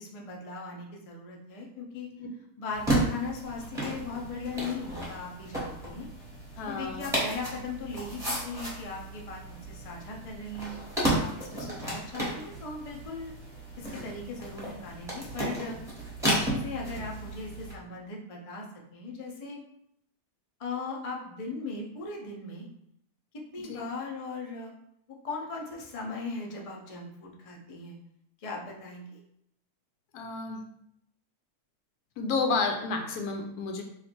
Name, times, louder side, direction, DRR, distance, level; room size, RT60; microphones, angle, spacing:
voice 1, 0.0-2.1 2.6-6.1 6.7-13.3 13.8-15.8 16.2-18.6 18.9-19.6 20.6-22.7 23.5-24.7 25.2-28.0 28.4-29.2, left 3 dB, 60° left, -1 dB, 0.3 m, -38 dB
sound 1, 2.7-17.7, right 1 dB, ahead, 1.0 m, -33 dB
voice 2, 6.6-7.1 23.6-23.9 30.1-30.6 32.2-33.8, left 4 dB, 85° left, 3 dB, 1.1 m, -31 dB
3.2 x 2.5 x 4.2 m, 0.74 s
omnidirectional pair, 1.6 m